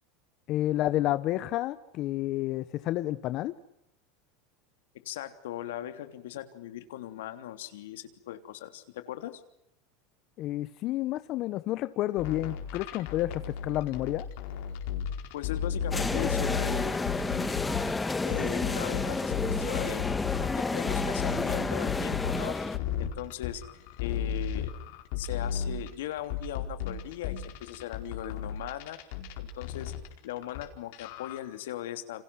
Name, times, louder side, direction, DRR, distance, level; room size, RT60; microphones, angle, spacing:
voice 1, 0.5-3.5 10.4-14.3, left 15 dB, 50° left, 13 dB, 1.2 m, -30 dB
voice 2, 5.0-9.4 15.3-17.1 18.2-20.0 20.4-22.6 23.0-23.6 24.0-24.7 25.2-29.0 29.4-29.9 30.2-32.2, left 12 dB, 85° left, 9 dB, 3.2 m, -39 dB
sound 1, 12.2-17.9 18.3-30.6 30.9-31.4, left 8 dB, 70° left, 4.7 m, -34 dB
sound 2, 15.9-22.8, left 3 dB, 10° left, 1.6 m, -30 dB
29.5 x 27.0 x 6.3 m, 0.78 s
supercardioid pair, 125°, 0 cm